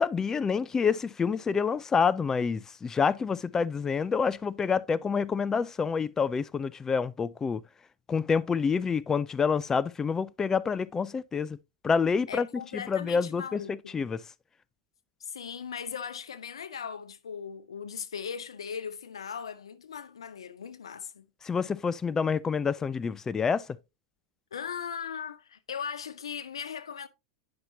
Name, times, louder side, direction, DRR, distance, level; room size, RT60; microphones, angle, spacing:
voice 1, 0.0-7.6 8.1-11.6 11.8-12.5 12.7-13.6 13.9-14.2 21.4-23.6, left 5 dB, 20° left, 0.3 m, -27 dB
voice 2, 12.3-13.9 15.2-21.3 24.5-27.1, left 7 dB, 85° left, 0.6 m, -38 dB
9.5 x 5.7 x 2.7 m
hypercardioid pair, 100°, 3 cm